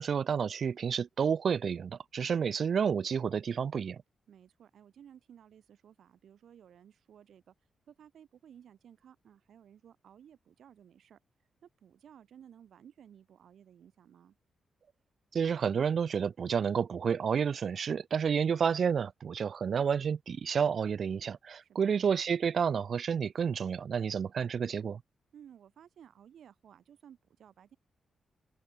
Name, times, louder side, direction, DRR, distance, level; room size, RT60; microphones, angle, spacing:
voice 1, 0.0-4.0 15.3-25.0, right 7 dB, 55° right, 0.4 m, -30 dB
voice 2, 4.3-7.5 7.9-11.2 11.6-14.4 21.6-22.0 25.3-27.8, right 9 dB, 75° right, 2.2 m, -56 dB
cardioid pair, 95°, 0 cm